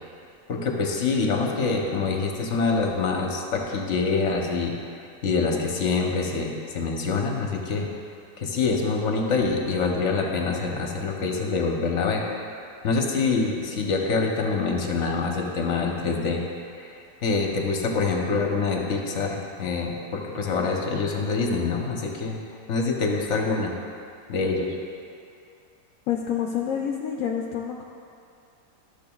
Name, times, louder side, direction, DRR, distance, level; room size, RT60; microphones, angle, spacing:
voice 1, 0.5-4.8 5.2-7.9 8.4-12.2 12.8-16.4 16.8-16.9 17.2-22.4 22.7-23.7 24.3-24.7, left 4 dB, 50° left, 0 dB, 1.1 m, -25 dB
voice 2, 26.1-27.8, left 8 dB, 70° left, 0 dB, 0.8 m, -28 dB
12.5 x 7.0 x 2.3 m, 2.4 s
omnidirectional pair, 1.8 m